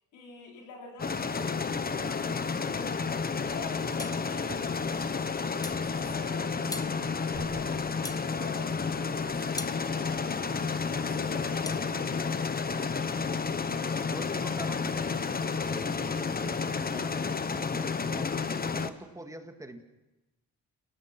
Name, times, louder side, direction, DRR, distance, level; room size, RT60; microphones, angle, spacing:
voice 1, 0.1-2.7 3.3-5.2 5.7-10.4 10.8-12.8, left 4 dB, 80° left, 0 dB, 4.8 m, -46 dB
sound 1, 1.0-18.9, left 5 dB, 30° left, 1.2 m, -31 dB
sound 2, 4.0-4.2 5.6-5.9 6.7-7.0 8.0-8.3 9.6-9.8 11.7-11.8, left 2 dB, 10° left, 0.8 m, -39 dB
sound 3, 4.1-4.6 5.0-6.2 6.5-8.0 8.4-8.6 8.9-9.4 9.7-9.8 10.2-10.8 11.1-11.5 11.8-12.1, right 4 dB, 35° right, 5.9 m, -50 dB
voice 2, 14.1-18.3 18.7-19.8, right 1 dB, 10° right, 5 dB, 2.1 m, -44 dB
28.0 x 17.5 x 6.1 m, 1.0 s
cardioid pair, 90°, 30 cm